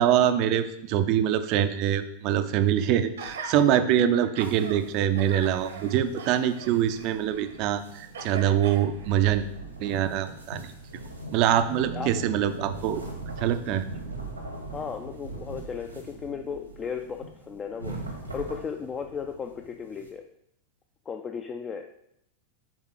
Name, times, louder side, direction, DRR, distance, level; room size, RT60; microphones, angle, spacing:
voice 1, 0.0-9.5 9.8-10.7 11.3-13.0 13.4-13.9, right 10 dB, 40° right, 10 dB, 0.5 m, -24 dB
Gasp, 3.2-3.6 4.1-4.8 5.2-7.7 8.1-9.2 9.9-10.0, right 4 dB, 65° right, 0.9 m, -41 dB
sound 1, 4.4-20.1, right 3 dB, 85° right, 1.3 m, -41 dB
voice 2, 11.7-12.1 14.7-20.2 21.1-21.9, left 6 dB, 20° left, 5 dB, 0.4 m, -35 dB
7.3 x 3.6 x 4.7 m, 0.77 s
figure-of-eight pair, 90°, 0 cm